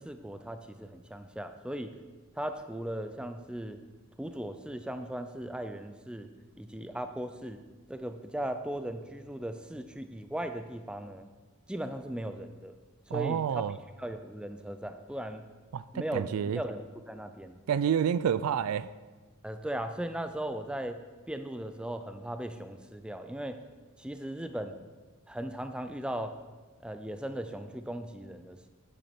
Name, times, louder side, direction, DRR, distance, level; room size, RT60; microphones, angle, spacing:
voice 1, 0.0-1.9 2.4-3.8 4.2-6.3 6.6-7.6 7.9-11.3 11.7-12.7 13.1-13.6 14.0-15.5 15.9-16.3 16.5-17.6 19.4-21.0 21.3-23.6 24.0-24.8 25.3-26.4 26.8-28.7, right 1 dB, 5° right, 8 dB, 0.4 m, -37 dB
voice 2, 13.1-13.8 15.7-16.6 17.7-18.9, right 8 dB, 75° right, 16 dB, 0.3 m, -29 dB
9.0 x 8.4 x 4.3 m, 1.3 s
head